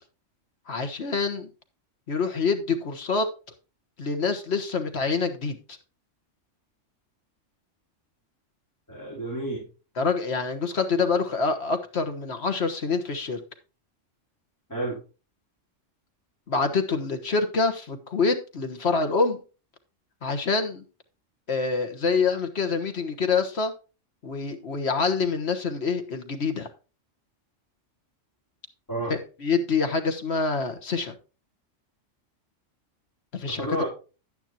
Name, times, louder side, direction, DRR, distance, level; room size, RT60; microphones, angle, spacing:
voice 1, 0.7-1.5 2.1-3.3 4.0-5.6 9.9-13.4 16.5-19.4 20.2-20.8 21.5-23.7 24.2-26.7 29.1-31.1 33.3-33.8, left 4 dB, 55° left, 7 dB, 1.5 m, -26 dB
voice 2, 8.9-9.6 14.7-15.0 28.9-29.1 33.6-33.8, right 1 dB, 15° left, -4 dB, 3.2 m, -30 dB
10.5 x 9.6 x 2.9 m, 0.33 s
omnidirectional pair, 1.3 m